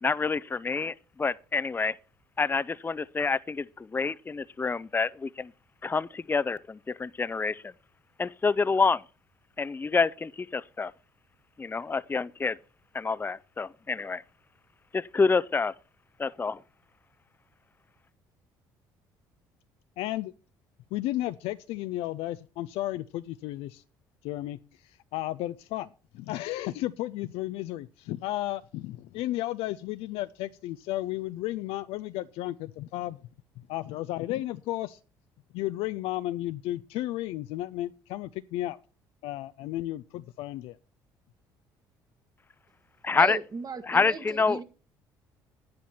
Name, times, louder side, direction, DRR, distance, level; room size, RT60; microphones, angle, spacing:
voice 1, 0.0-2.0 2.4-5.5 5.8-7.7 8.2-9.0 9.6-10.9 11.6-12.5 12.9-14.2 14.9-15.7 16.2-16.6 43.0-43.4 43.9-44.6, left 4 dB, 20° left, 0.5 m, -27 dB
voice 2, 20.0-20.3 20.9-23.8 24.2-25.9 26.1-33.2 33.6-35.0 35.5-38.8 39.2-40.8, left 15 dB, 70° left, 0.5 m, -33 dB
voice 3, 43.1-44.6, right 4 dB, 40° right, 1.8 m, -37 dB
11.0 x 10.5 x 4.3 m
hypercardioid pair, 60°, 10 cm